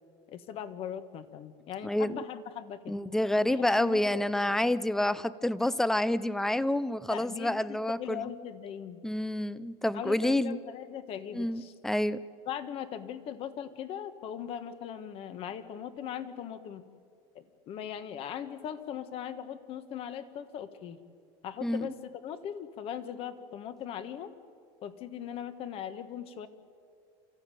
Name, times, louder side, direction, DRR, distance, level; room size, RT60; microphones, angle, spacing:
voice 1, 0.3-3.0 3.5-4.1 4.5-4.6 7.1-9.0 9.9-11.7 12.4-16.8 17.3-21.0 21.4-24.3 24.8-26.5, left 9 dB, 40° left, 10 dB, 1.5 m, -39 dB
voice 2, 1.8-2.1 2.9-8.2 9.0-10.6 11.3-12.2 21.6-21.9, left 1 dB, 5° left, 16 dB, 0.5 m, -28 dB
29.5 x 14.5 x 9.1 m, 2.3 s
cardioid pair, 150°, 14 cm